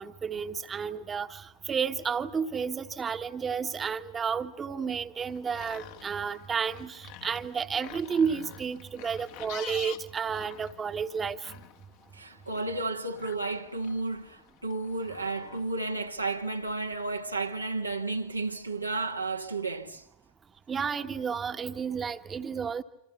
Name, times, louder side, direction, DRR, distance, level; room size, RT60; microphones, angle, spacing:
voice 1, 0.0-11.5 20.7-22.8, right 6 dB, 20° right, 1.3 m, -31 dB
sound 1, 5.3-16.1, left 12 dB, 45° left, 1.5 m, -48 dB
voice 2, 12.1-20.0, right 3 dB, 85° right, 1.6 m, -32 dB
27.5 x 27.0 x 7.0 m
figure-of-eight pair, 90°, 0 cm